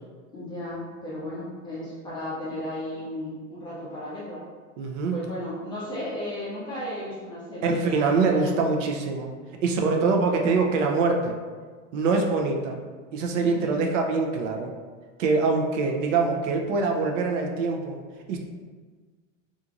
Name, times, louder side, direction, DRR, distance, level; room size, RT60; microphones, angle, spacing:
voice 1, 0.3-4.4 5.1-8.5 9.7-10.1 13.4-13.8, left 1 dB, 10° left, -8 dB, 0.5 m, -35 dB
voice 2, 4.8-5.2 7.6-9.3 9.6-11.3 11.9-12.8 13.1-14.7 15.2-18.0 18.3-18.4, right 4 dB, 65° right, 2 dB, 0.6 m, -24 dB
2.8 x 2.5 x 2.4 m, 1.5 s
supercardioid pair, 140°, 40 cm